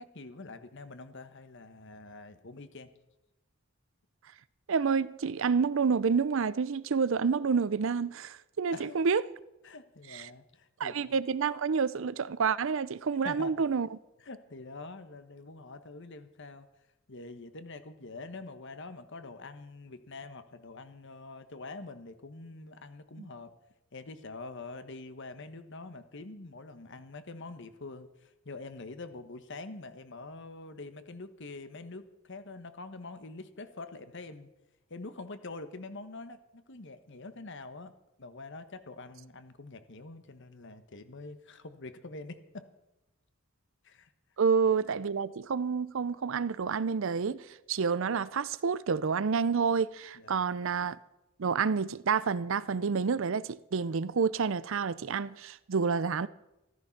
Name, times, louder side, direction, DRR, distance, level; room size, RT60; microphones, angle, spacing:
voice 1, 0.0-2.9 8.7-9.0 9.6-11.2 13.2-13.7 14.2-16.7 17.1-23.5 23.9-34.5 34.9-37.9 38.2-42.6 43.8-44.1 50.1-50.4, left 3 dB, 60° left, 1.3 m, -45 dB
voice 2, 4.7-9.2 10.1-10.2 10.8-13.9 23.2-23.3 44.4-47.4 47.7-51.0 51.4-56.3, right 5 dB, 65° right, 0.5 m, -29 dB
14.0 x 13.5 x 5.8 m
head